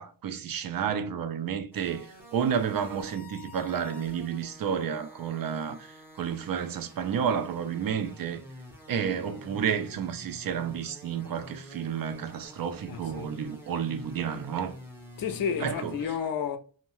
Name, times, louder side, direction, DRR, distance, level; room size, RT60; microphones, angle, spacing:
voice 1, 0.0-2.1 2.3-8.4 8.9-14.8 15.6-15.9, right 7 dB, 55° right, 0.4 m, -31 dB
sound 1, 1.7-16.0, equal, 5° right, 0.6 m, -49 dB
voice 2, 12.9-13.3 15.2-16.6, left 7 dB, 55° left, 0.5 m, -31 dB
2.6 x 2.1 x 2.9 m
wide cardioid pair, 165°, 43 cm